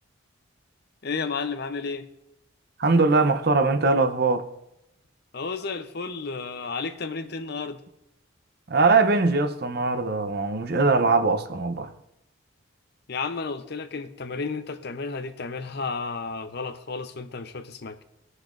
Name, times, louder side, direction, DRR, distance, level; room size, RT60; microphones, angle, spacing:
voice 1, 1.0-2.1 5.3-7.8 13.1-18.0, left 4 dB, 55° left, 0.7 m, -32 dB
voice 2, 2.8-4.5 8.7-11.9, right 3 dB, 50° right, 0.7 m, -21 dB
19.5 x 6.5 x 2.6 m
head